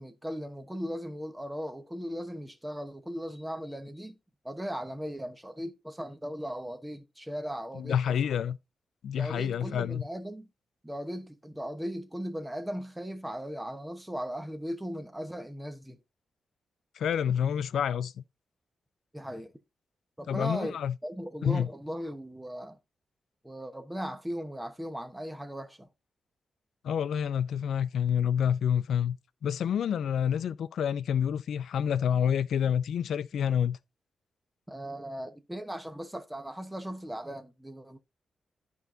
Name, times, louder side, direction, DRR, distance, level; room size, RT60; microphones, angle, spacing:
voice 1, 0.0-4.1 4.4-8.4 9.1-10.5 10.8-16.0 19.1-19.5 20.2-20.8 21.0-22.8 23.4-25.9 34.7-38.0, equal, 5° right, 1.0 m, -38 dB
voice 2, 7.7-8.6 9.0-10.0 17.0-18.1 20.3-20.9 21.4-21.7 26.8-29.2 29.4-33.8, left 8 dB, 85° left, 0.4 m, -28 dB
13.5 x 4.5 x 2.6 m
wide cardioid pair, 125°, 0 cm